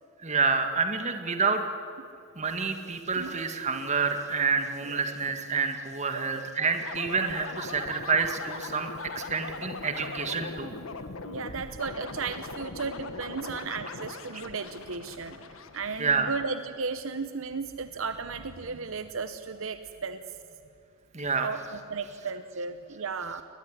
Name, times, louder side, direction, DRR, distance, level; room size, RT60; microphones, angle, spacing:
voice 1, 0.2-1.6 2.4-8.9 9.1-10.7 16.0-16.3 21.1-21.5, right 4 dB, 30° right, 6 dB, 1.9 m, -28 dB
voice 2, 6.1-6.5 11.3-15.4 15.7-20.2 21.4-23.4, right 4 dB, 65° right, 10 dB, 0.8 m, -35 dB
sound 1, 6.8-16.4, left 3 dB, 70° left, 1.4 m, -40 dB
21.5 x 20.5 x 9.9 m, 2.5 s
head